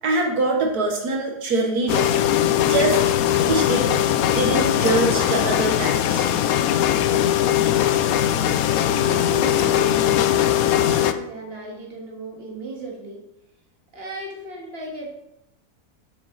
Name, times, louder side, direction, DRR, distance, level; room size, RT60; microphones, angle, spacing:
voice 1, 0.0-2.1 2.7-3.0 3.4-3.9 4.3-6.3, right 2 dB, 80° right, 1 dB, 1.6 m, -23 dB
sound 1, 1.9-11.1, left 11 dB, 75° left, 1.0 m, -20 dB
voice 2, 9.0-13.3 13.9-15.1, right 2 dB, 40° right, -1 dB, 2.0 m, -35 dB
7.9 x 7.0 x 4.0 m, 0.83 s
omnidirectional pair, 1.6 m